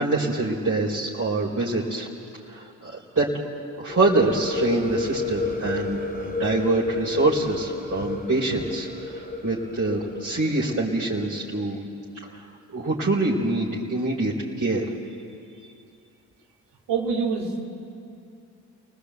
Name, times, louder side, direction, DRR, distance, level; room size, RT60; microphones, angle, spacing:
voice 1, 0.0-2.1 2.5-3.3 3.8-11.8 12.3-12.4 12.7-14.9, right 2 dB, 35° right, -4 dB, 4.2 m, -25 dB
sound 1, 3.9-11.5, left 3 dB, 20° left, 4.0 m, -32 dB
voice 2, 16.9-17.6, right 5 dB, 85° right, -2 dB, 3.0 m, -26 dB
29.5 x 19.0 x 8.3 m, 2.6 s
supercardioid pair, 45°, 41 cm